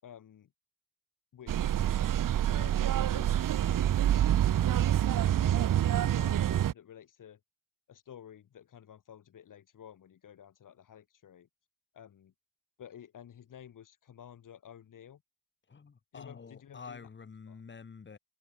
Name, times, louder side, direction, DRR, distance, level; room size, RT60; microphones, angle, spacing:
voice 1, 0.0-0.5 1.3-1.8 2.5-3.9 4.4-7.4 7.9-11.5 11.9-12.3 12.8-15.2 16.1-17.1 17.5-17.6, left 9 dB, 75° left, 6.3 m, -52 dB
sound 1, 1.5-6.7, right 11 dB, 85° right, 1.2 m, -27 dB
voice 2, 15.7-18.2, left 5 dB, 35° left, 6.3 m, -48 dB
wide cardioid pair, 175°, 32 cm